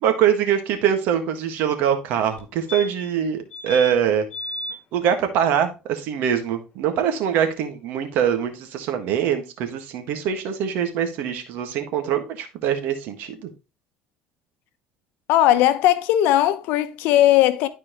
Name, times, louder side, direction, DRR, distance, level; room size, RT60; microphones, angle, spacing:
voice 1, 0.0-4.2 4.9-13.5, right 8 dB, 75° right, 1.6 m, -23 dB
sound 1, 2.4-2.5 2.7-3.2 3.5-3.9 4.3-4.8 7.1-7.2 7.4-7.5, left 1 dB, 50° left, 1.9 m, -33 dB
voice 2, 15.3-17.7, left 13 dB, 80° left, 0.7 m, -18 dB
12.5 x 4.5 x 3.0 m
cardioid pair, 115°, 3 cm